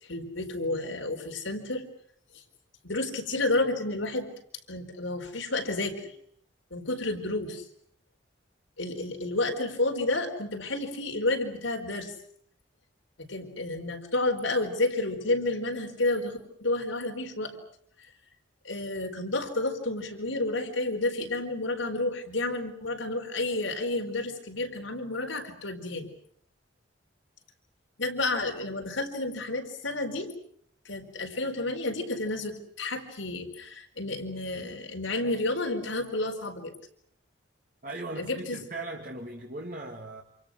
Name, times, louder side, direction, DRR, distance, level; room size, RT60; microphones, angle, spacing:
voice 1, 0.1-1.8 2.3-2.4 2.8-4.3 4.7-6.1 6.7-7.6 8.8-12.1 13.3-17.6 18.6-26.1 28.0-30.3 30.8-36.7 38.2-38.6, left 2 dB, 85° left, 4.6 m, -30 dB
voice 2, 37.8-40.2, right 2 dB, 45° right, 2.4 m, -38 dB
28.5 x 27.5 x 6.4 m
head